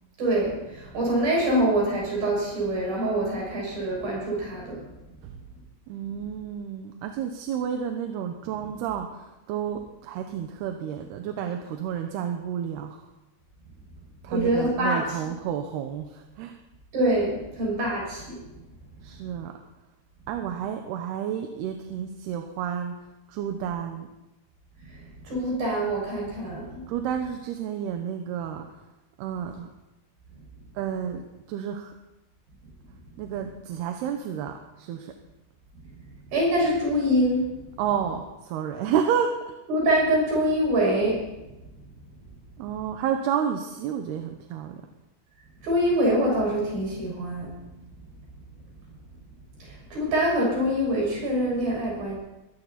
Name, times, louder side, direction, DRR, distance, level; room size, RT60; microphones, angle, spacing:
voice 1, 0.2-4.8 14.3-15.0 16.9-18.4 24.8-26.8 36.3-37.6 39.7-41.3 45.6-47.7 49.6-52.1, right 1 dB, 65° right, -3 dB, 8.2 m, -25 dB
voice 2, 5.9-13.0 14.2-16.6 19.0-19.6 20.3-23.0 23.3-24.1 26.9-28.7 29.2-29.7 30.7-31.9 33.2-35.1 37.8-39.5 42.6-44.8, right 8 dB, 80° right, 5 dB, 3.0 m, -30 dB
21.5 x 16.0 x 4.2 m, 0.99 s
omnidirectional pair, 4.6 m